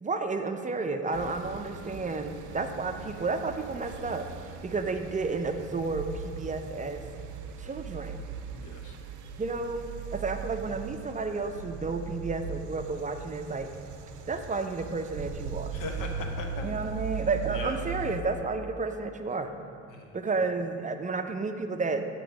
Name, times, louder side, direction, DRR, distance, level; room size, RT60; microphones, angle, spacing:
voice 1, 0.0-4.3 4.6-7.0 7.6-8.2 9.4-13.7 14.3-15.8 16.6-19.5 20.1-22.0, right 3 dB, 25° right, 6 dB, 0.4 m, -31 dB
sound 1, 1.1-18.2, right 6 dB, 90° right, 0.5 m, -39 dB
voice 2, 8.5-9.0 15.7-16.7 17.5-17.9 19.9-20.2, left 3 dB, 90° left, 3 dB, 0.9 m, -39 dB
8.6 x 3.0 x 6.2 m, 2.6 s
cardioid pair, 90°, 30 cm